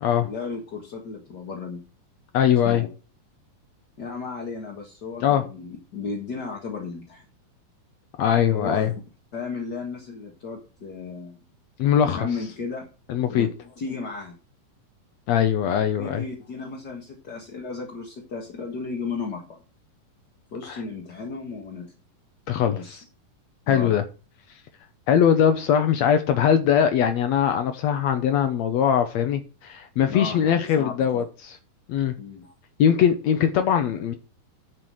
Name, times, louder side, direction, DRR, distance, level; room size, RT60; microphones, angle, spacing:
voice 1, 0.2-1.8 2.6-2.9 4.0-7.2 8.5-8.9 9.3-11.4 12.0-12.9 13.3-14.3 16.0-19.6 20.5-21.9 22.6-23.0 23.7-23.9 30.1-31.2 32.2-32.5, left 4 dB, 40° left, 1.6 m, -34 dB
voice 2, 2.3-2.8 5.2-5.4 8.2-8.9 11.8-12.3 13.1-13.5 15.3-16.2 20.7-20.8 22.5-23.0 23.7-24.0 25.1-31.6 31.9-32.1 32.8-34.1, left 9 dB, 80° left, 1.6 m, -21 dB
10.5 x 6.1 x 6.3 m
omnidirectional pair, 4.1 m